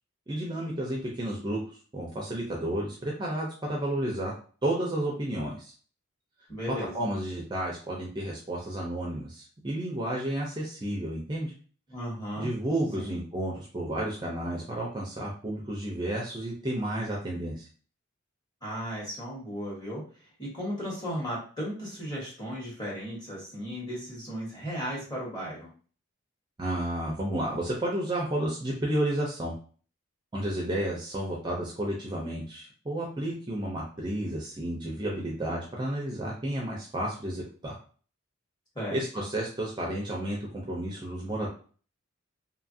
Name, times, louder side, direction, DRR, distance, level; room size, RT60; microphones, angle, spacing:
voice 1, 0.3-4.3 4.6-5.7 6.9-11.5 12.4-17.7 26.6-29.5 30.3-37.8 38.9-41.5, right 1 dB, 20° right, -2 dB, 0.4 m, -31 dB
voice 2, 6.5-6.9 11.9-12.5 13.0-13.2 18.6-20.0 20.4-25.7 38.7-39.0, equal, 20° left, -4 dB, 1.1 m, -35 dB
2.7 x 2.4 x 2.6 m, 0.41 s
head